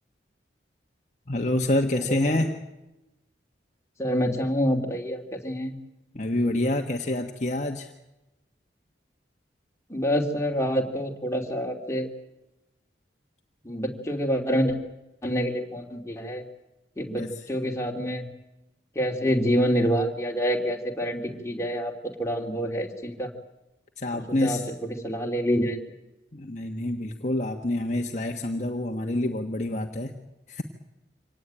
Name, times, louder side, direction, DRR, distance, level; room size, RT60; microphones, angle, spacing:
voice 1, 1.3-2.5 6.1-7.9 17.2-17.3 24.0-24.6 26.3-30.1 30.5-30.6, left 1 dB, 40° left, 3 dB, 1.4 m, -27 dB
voice 2, 2.1-2.4 4.0-5.7 9.9-12.1 13.6-14.8 15.2-16.4 17.0-18.3 18.9-23.3 24.1-25.8, equal, 15° left, 1 dB, 2.9 m, -27 dB
25.5 x 18.5 x 8.9 m, 0.97 s
head